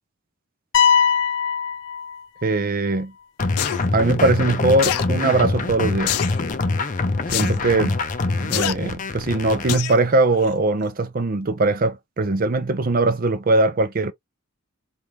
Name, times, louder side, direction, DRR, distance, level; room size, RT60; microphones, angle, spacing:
sound 1, 0.7-2.6, left 7 dB, 60° left, 0.9 m, -20 dB
voice 1, 2.4-3.1 3.9-6.2 7.3-8.0 8.4-14.1, right 2 dB, 40° right, 0.5 m, -21 dB
sound 2, 3.4-9.8, left 3 dB, 35° left, 0.5 m, -24 dB
sound 3, 3.6-3.8 4.8-5.1 6.1-6.4 7.3-7.5 8.5-8.7 9.7-10.0 10.4-10.5, left 12 dB, 90° left, 0.4 m, -24 dB
3.5 x 2.5 x 2.9 m
head